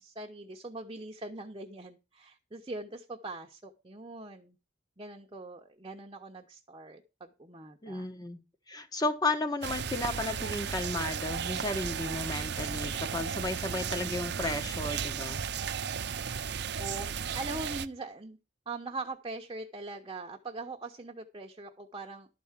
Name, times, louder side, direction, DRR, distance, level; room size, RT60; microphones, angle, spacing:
voice 1, 0.0-4.6 5.0-8.1 16.8-18.4 18.7-22.3, right 2 dB, 25° right, 0.9 m, -42 dB
voice 2, 7.8-8.4 8.7-15.4, left 2 dB, 20° left, 1.2 m, -33 dB
sound 1, 9.6-17.9, right 7 dB, 65° right, 0.7 m, -35 dB
12.0 x 4.7 x 7.3 m
head